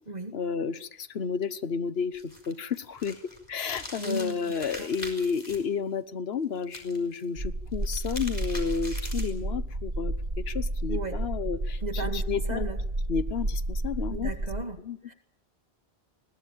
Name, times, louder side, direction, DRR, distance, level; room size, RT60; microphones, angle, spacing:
voice 1, 0.3-3.2 3.5-12.7 13.1-14.3 14.8-15.0, left 6 dB, 75° left, 13 dB, 1.3 m, -31 dB
sound 1, 2.2-5.6 6.6-7.2 7.7-9.4, left 1 dB, 40° left, 4.5 m, -42 dB
voice 2, 4.0-4.9 10.9-11.2 11.8-12.8 14.1-14.8 15.1-15.2, right 2 dB, 40° right, 5 dB, 2.5 m, -35 dB
sound 2, 7.4-14.6, right 1 dB, 65° right, 2.6 m, -31 dB
21.0 x 17.5 x 9.1 m, 0.71 s
omnidirectional pair, 1.1 m